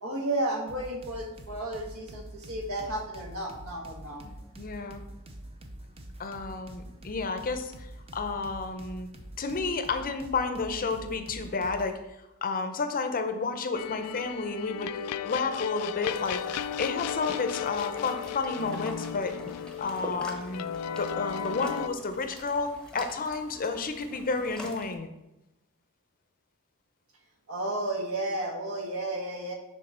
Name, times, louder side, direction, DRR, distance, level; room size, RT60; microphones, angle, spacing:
voice 1, 0.0-4.2 27.5-29.5, right 1 dB, 70° right, 1 dB, 1.4 m, -33 dB
sound 1, 0.7-12.0, right 1 dB, 25° right, 0.6 m, -46 dB
voice 2, 4.2-5.0 6.2-9.1 9.4-12.0 12.4-14.9 15.2-16.4 16.8-19.3 19.8-20.6 21.0-25.1, left 4 dB, 40° left, 7 dB, 0.6 m, -31 dB
sound 2, 13.7-21.9, left 8 dB, 85° left, 0.3 m, -35 dB
sound 3, 16.1-24.9, left 1 dB, 5° left, 0.9 m, -45 dB
6.5 x 3.7 x 5.6 m, 0.95 s
head